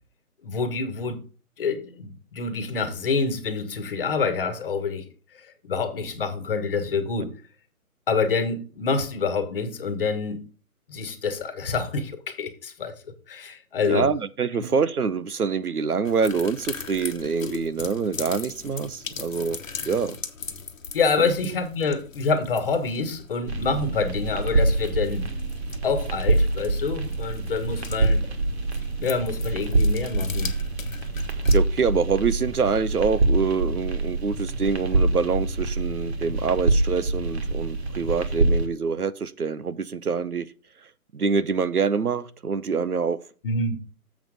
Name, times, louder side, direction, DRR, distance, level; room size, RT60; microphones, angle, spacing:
voice 1, 0.4-1.2 1.6-5.1 5.3-7.3 8.1-10.4 10.9-12.9 13.3-14.1 20.9-25.2 25.8-28.2 29.0-30.5 43.4-43.8, left 4 dB, 40° left, 1.4 m, -27 dB
voice 2, 13.9-20.2 21.2-21.3 31.5-40.5 41.1-43.2, right 5 dB, 85° right, 0.8 m, -25 dB
sound 1, 16.0-31.6, left 5 dB, 60° left, 1.2 m, -40 dB
sound 2, 23.5-38.7, right 2 dB, 45° right, 1.5 m, -25 dB
7.4 x 5.9 x 5.0 m
figure-of-eight pair, 140°, 44 cm